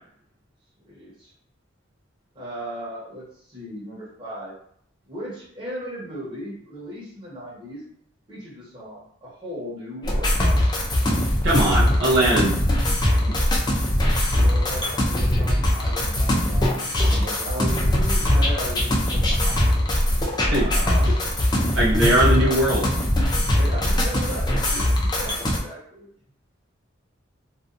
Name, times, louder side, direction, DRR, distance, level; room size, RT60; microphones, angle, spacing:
voice 1, 0.8-1.3 2.3-4.5 5.1-7.9 8.3-10.4 14.3-19.8 20.5-21.3 22.4-22.6 23.5-26.1, equal, 25° right, -8 dB, 1.0 m, -37 dB
sound 1, 10.0-25.6, left 1 dB, 20° left, 0.4 m, -21 dB
voice 2, 11.4-12.5 20.5-20.7 21.7-22.9, right 1 dB, 70° right, -6 dB, 0.6 m, -20 dB
2.6 x 2.2 x 2.5 m, 0.66 s
head